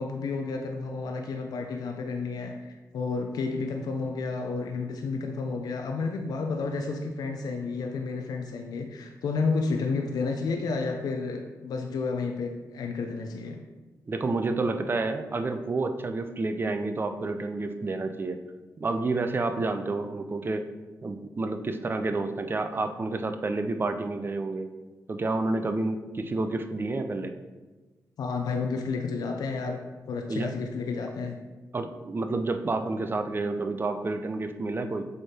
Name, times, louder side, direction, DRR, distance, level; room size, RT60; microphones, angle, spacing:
voice 1, 0.0-13.6 28.2-29.8 30.1-31.4, left 4 dB, 75° left, 3 dB, 0.5 m, -31 dB
voice 2, 14.1-18.4 18.8-20.6 21.0-24.7 25.1-27.3 30.3-30.5 31.7-35.1, right 3 dB, 35° right, 8 dB, 0.6 m, -29 dB
6.8 x 3.5 x 4.3 m, 1.2 s
cardioid pair, 80°, 7 cm